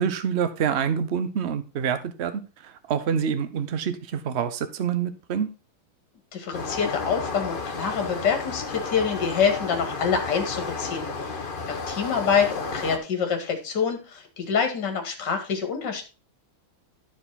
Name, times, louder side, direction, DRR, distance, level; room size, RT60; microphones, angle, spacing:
voice 1, 0.0-5.5, right 7 dB, 55° right, 11 dB, 0.7 m, -27 dB
voice 2, 6.3-11.1 11.7-16.0, left 6 dB, 50° left, 4 dB, 2.4 m, -26 dB
sound 1, 6.5-13.0, left 4 dB, 30° left, 1.0 m, -32 dB
12.5 x 4.8 x 4.1 m, 0.31 s
omnidirectional pair, 2.4 m